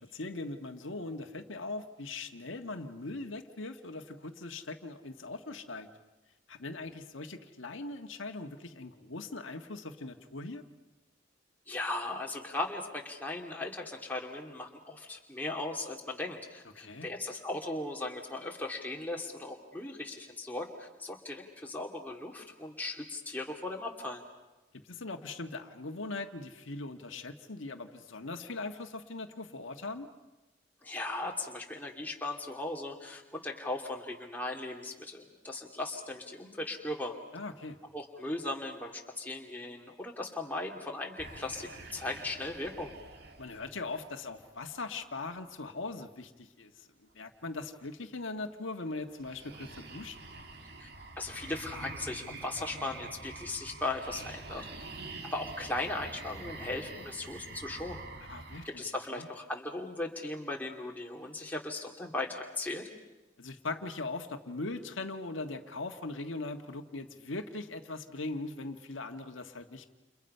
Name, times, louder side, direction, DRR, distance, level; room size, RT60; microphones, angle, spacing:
voice 1, 0.0-5.9 6.5-10.6 16.8-17.1 24.8-30.1 37.3-37.8 43.4-50.2 58.3-58.8 59.1-59.3 63.4-69.8, left 3 dB, 85° left, 5 dB, 1.6 m, -40 dB
voice 2, 11.7-24.2 30.8-37.1 37.9-42.9 50.8-50.9 51.2-54.7 55.3-58.0 58.6-62.8, left 2 dB, 10° left, 0 dB, 2.6 m, -38 dB
sound 1, 41.2-44.9 49.2-58.7, right 3 dB, 55° right, 2.0 m, -46 dB
30.0 x 29.0 x 5.6 m, 1.1 s
head